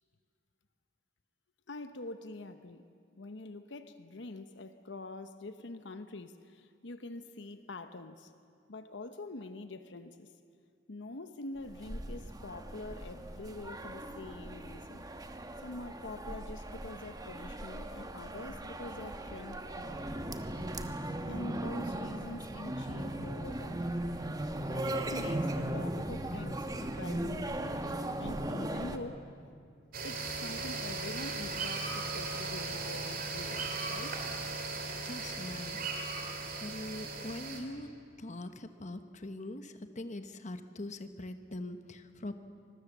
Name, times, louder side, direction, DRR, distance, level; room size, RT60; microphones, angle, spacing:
voice 1, 1.7-2.9 3.1-8.3 8.7-10.3 10.9-15.1 15.6-19.9 21.3-23.9 24.7-27.9 28.2-29.2 30.0-34.2, left 2 dB, 70° left, 9 dB, 0.9 m, -45 dB
sound 1, 11.6-29.0, right 1 dB, 20° right, 1.2 m, -38 dB
sound 2, 29.9-37.6, right 3 dB, 50° right, 3.0 m, -37 dB
voice 2, 35.0-35.8 36.6-37.9 38.2-42.3, left 1 dB, 40° left, 9 dB, 1.1 m, -42 dB
25.5 x 21.0 x 7.3 m, 2.3 s
head